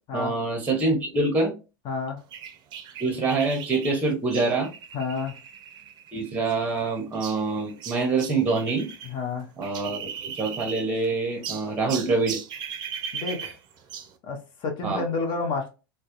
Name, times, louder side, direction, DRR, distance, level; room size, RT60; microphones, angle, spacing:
voice 1, 0.1-1.5 3.0-4.7 6.1-8.9 9.6-12.4 14.8-15.1, right 3 dB, 15° right, 0.8 m, -25 dB
voice 2, 1.8-2.2 4.9-5.4 9.0-9.5 13.1-13.5 14.2-15.7, left 4 dB, 45° left, 0.8 m, -30 dB
sound 1, 2.3-9.1 9.4-11.1 11.4-14.2, right 7 dB, 40° right, 0.5 m, -38 dB
2.2 x 2.1 x 2.9 m
hypercardioid pair, 100°, 11 cm